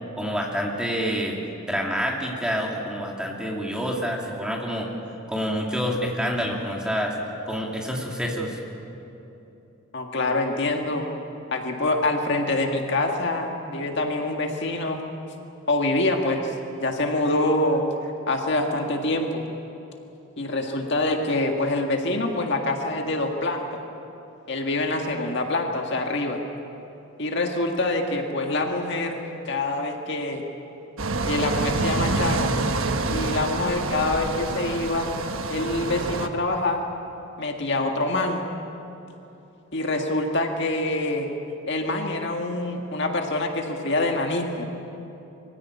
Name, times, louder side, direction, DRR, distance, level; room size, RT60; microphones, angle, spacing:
voice 1, 0.2-1.4 1.7-4.9 5.3-7.1 7.5-8.6, equal, 5° right, -2 dB, 2.8 m, -27 dB
voice 2, 9.9-11.1 11.5-15.0 15.7-16.5 16.8-19.4 20.4-23.7 24.5-26.4 27.2-30.4 31.3-32.6 33.1-35.1 35.5-36.8 37.4-38.4 39.7-41.3 41.7-44.6, left 2 dB, 55° left, 2 dB, 1.9 m, -25 dB
sound 1, 31.0-36.3, right 3 dB, 70° right, 1.2 m, -27 dB
23.5 x 16.0 x 9.7 m, 2.9 s
head